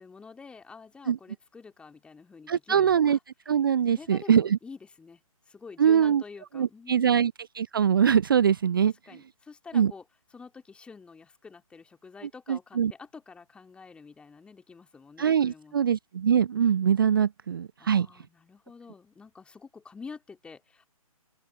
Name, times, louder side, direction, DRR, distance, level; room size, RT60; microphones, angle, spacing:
voice 1, 0.0-3.2 3.9-5.2 5.5-7.2 9.1-10.0 10.3-15.9 17.8-20.9, left 5 dB, 5° left, 2.9 m, -47 dB
voice 2, 2.5-3.2 3.5-4.6 5.8-6.2 6.5-8.9 9.7-9.9 12.5-12.9 15.2-18.1, right 8 dB, 40° right, 0.4 m, -23 dB
open air
figure-of-eight pair, 140°, 18 cm